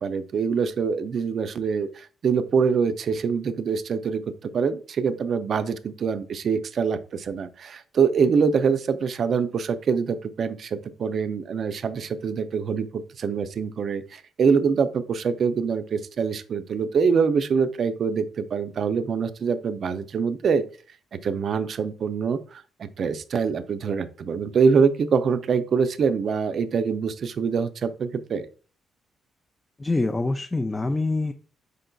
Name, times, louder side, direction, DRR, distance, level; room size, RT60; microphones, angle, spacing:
voice 1, 0.0-20.6 21.1-28.5, right 6 dB, 55° right, 11 dB, 0.4 m, -24 dB
voice 2, 29.8-31.3, left 2 dB, 20° left, 6 dB, 0.4 m, -25 dB
5.1 x 3.8 x 2.3 m, 0.39 s
cardioid pair, 90°, 0 cm